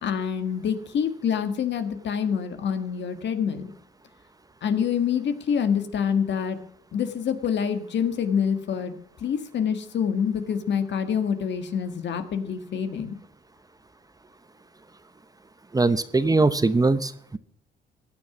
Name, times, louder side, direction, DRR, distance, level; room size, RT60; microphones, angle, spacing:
voice 1, 0.0-3.7 4.6-6.6 6.9-8.9 9.2-13.2, left 7 dB, 65° left, 8 dB, 1.7 m, -26 dB
voice 2, 15.7-17.4, right 3 dB, 20° right, 13 dB, 0.8 m, -21 dB
16.0 x 9.3 x 6.0 m, 0.66 s
cardioid pair, 90°, 20 cm